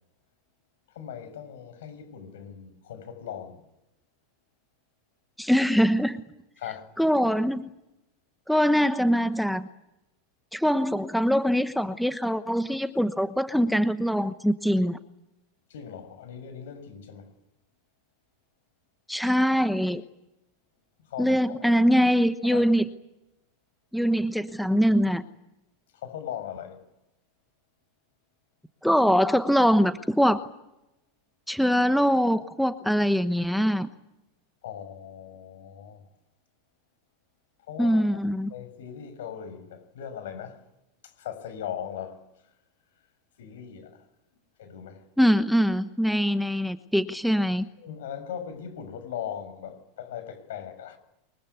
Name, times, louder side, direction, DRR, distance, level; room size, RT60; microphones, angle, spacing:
voice 1, 0.9-3.6 6.6-6.9 15.7-17.3 21.1-21.6 22.5-22.7 25.9-26.8 34.6-36.0 37.7-38.2 38.5-40.6 41.0-42.2 43.4-44.0 44.6-45.0 47.8-51.0, left 9 dB, 80° left, 6.5 m, -39 dB
voice 2, 5.4-6.2 7.0-7.7 8.5-9.7 10.5-15.0 19.1-20.0 21.2-22.8 23.9-25.2 28.8-30.4 31.5-33.9 37.8-38.5 45.2-47.6, equal, ahead, 1.1 m, -23 dB
23.5 x 22.5 x 9.6 m
supercardioid pair, 140°, 0 cm